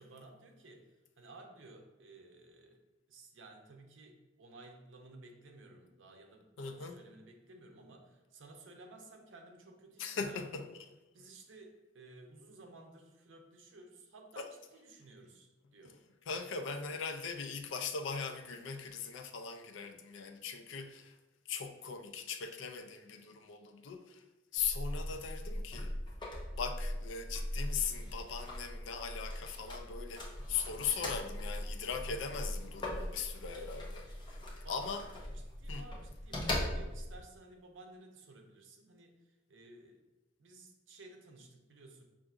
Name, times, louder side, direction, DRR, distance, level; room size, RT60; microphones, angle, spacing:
voice 1, 0.0-2.8 3.1-10.6 11.1-16.0 34.6-40.0 40.4-42.0, right 2 dB, 80° right, 0.6 m, -55 dB
voice 2, 6.6-7.0 10.0-10.6 16.3-21.2 21.5-24.2 24.5-25.9 26.6-34.1 34.7-35.0 35.7-35.9, left 6 dB, 75° left, 0.4 m, -39 dB
sound 1, 24.6-37.2, left 1 dB, 25° left, 0.7 m, -40 dB
5.5 x 2.5 x 2.5 m
head